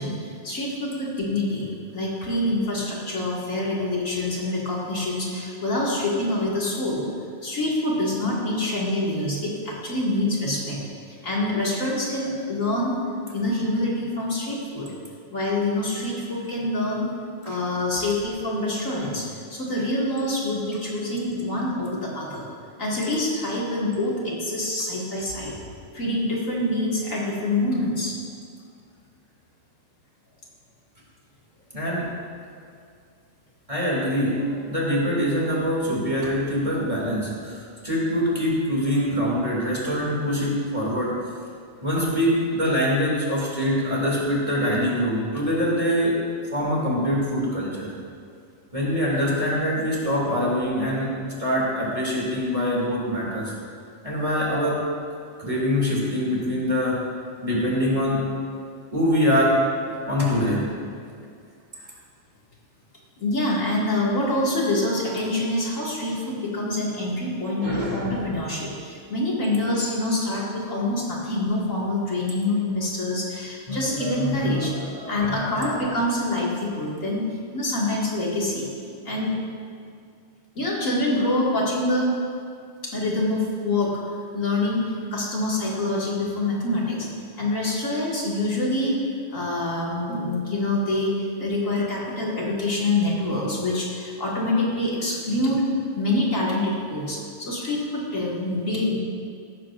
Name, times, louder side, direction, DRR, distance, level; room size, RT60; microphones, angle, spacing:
voice 1, 0.0-7.0 7.4-10.8 11.2-13.0 13.3-14.9 15.3-17.1 17.4-22.5 22.8-25.5 25.9-28.1 46.6-46.7 63.2-74.7 75.1-77.3 77.5-78.7 79.0-79.3 80.6-82.1 82.9-83.9 84.3-87.1 87.4-88.9 89.3-95.6 96.0-99.0, left 1 dB, 75° left, -5 dB, 2.5 m, -26 dB
voice 2, 31.7-32.1 33.7-41.1 41.8-46.2 46.5-47.9 48.7-51.1 51.4-53.5 54.0-54.8 55.4-57.0 57.4-58.2 58.9-59.6 60.0-60.6 67.6-68.3 73.7-75.9, equal, 25° right, -5 dB, 2.6 m, -24 dB
15.0 x 13.0 x 2.5 m, 2.2 s
omnidirectional pair, 1.4 m